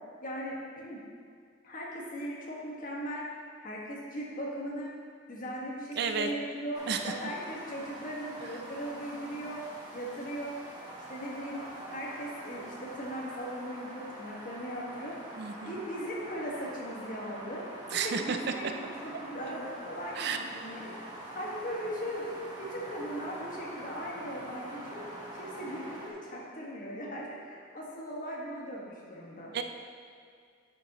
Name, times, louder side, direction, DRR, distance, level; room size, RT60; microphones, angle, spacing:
voice 1, 0.2-1.0 1.6-3.3 3.6-4.9 5.3-9.6 9.9-10.5 11.1-11.6 11.9-15.2 15.6-17.6 17.9-20.9 21.3-22.2 22.6-25.0 25.3-29.5, equal, 45° left, -4 dB, 1.7 m, -38 dB
voice 2, 6.0-6.3 6.9-7.1 15.4-15.8 17.9-18.4 18.6-18.7 19.1-19.2 20.2-20.4 29.5-29.6, right 6 dB, 55° right, 6 dB, 0.4 m, -32 dB
sound 1, 6.7-26.1, right 1 dB, 20° right, 1.4 m, -45 dB
10.0 x 7.3 x 3.0 m, 2.2 s
head